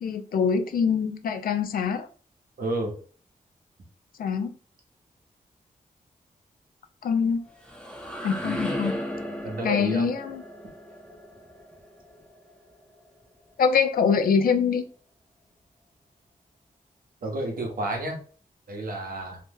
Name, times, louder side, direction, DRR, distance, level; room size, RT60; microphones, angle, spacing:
voice 1, 0.0-2.1 4.2-4.5 7.0-7.4 8.2-9.0 9.6-10.4 13.6-14.8, left 6 dB, 80° left, 8 dB, 0.4 m, -24 dB
voice 2, 2.6-2.9 9.4-10.1 17.2-18.2 18.7-19.4, right 1 dB, 75° right, 1 dB, 1.0 m, -30 dB
sound 1, 7.3-13.1, equal, 5° left, 0.6 m, -36 dB
2.9 x 2.1 x 3.4 m, 0.41 s
wide cardioid pair, 95°, 15 cm